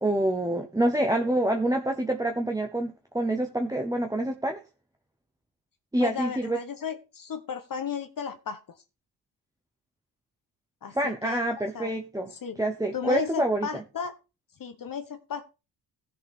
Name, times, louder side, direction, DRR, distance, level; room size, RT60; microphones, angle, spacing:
voice 1, 0.0-4.6 5.9-6.6 10.9-12.3 12.6-13.8, right 1 dB, 10° right, 4 dB, 1.1 m, -27 dB
voice 2, 6.0-8.6 10.8-11.9 12.3-12.6 12.9-14.1 14.6-15.4, left 6 dB, 50° left, 8 dB, 1.1 m, -34 dB
15.5 x 6.6 x 3.7 m, 0.29 s
cardioid pair, 100°, 42 cm